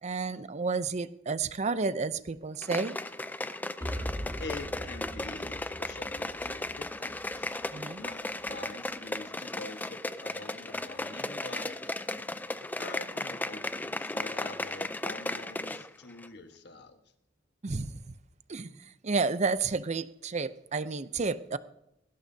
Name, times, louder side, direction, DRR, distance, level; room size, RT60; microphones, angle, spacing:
voice 1, 0.0-3.0 7.7-8.0 17.6-18.0 18.5-21.6, right 4 dB, 40° right, 14 dB, 0.6 m, -31 dB
sound 1, 2.6-15.9 16.2-16.3, left 2 dB, 10° left, 0.4 m, -36 dB
sound 2, 3.8-7.7, equal, 20° right, 3.5 m, -40 dB
voice 2, 4.4-7.6 8.0-11.8 12.8-17.0, left 3 dB, 65° left, 6 dB, 1.3 m, -45 dB
19.0 x 16.5 x 2.8 m, 0.82 s
head